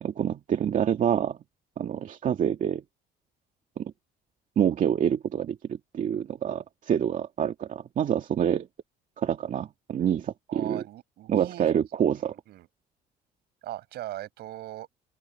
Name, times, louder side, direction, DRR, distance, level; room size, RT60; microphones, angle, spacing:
voice 1, 0.0-1.4 1.8-2.8 3.8-3.9 4.6-5.6 5.9-8.7 9.2-10.8 11.3-12.3, right 9 dB, 50° right, 2.2 m, -26 dB
voice 2, 10.5-11.7 12.2-12.7 13.6-14.9, right 14 dB, 75° right, 8.0 m, -39 dB
open air
cardioid pair, 110°, 17 cm